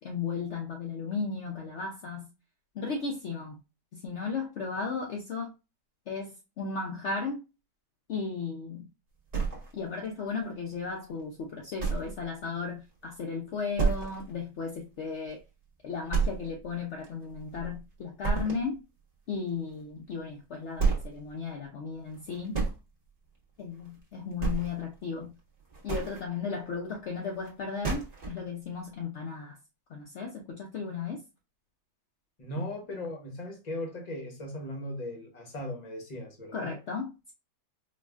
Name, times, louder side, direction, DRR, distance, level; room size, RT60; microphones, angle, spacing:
voice 1, 0.0-2.2 2.7-3.6 3.9-5.5 6.1-7.4 8.1-8.9 9.7-15.4 15.8-18.8 19.3-22.6 23.6-25.3 25.8-29.6 29.9-31.2 36.5-37.3, left 5 dB, 70° left, 0.6 m, -35 dB
sound 1, 9.3-10.1 10.5-10.6 11.1-11.2 11.8-12.2 12.5-12.6 13.0-13.1 13.8-14.3 14.7-14.8 15.3-15.4 16.1-16.7 17.0-17.8 18.2-18.7 20.1-20.2 20.7-21.2 22.1-22.8 23.8-24.0 24.3-24.9 25.6-26.2 27.4-27.5 27.8-28.4, right 5 dB, 30° right, 1.0 m, -30 dB
voice 2, 32.4-36.8, left 1 dB, 35° left, 0.7 m, -38 dB
4.7 x 2.4 x 2.3 m
omnidirectional pair, 1.8 m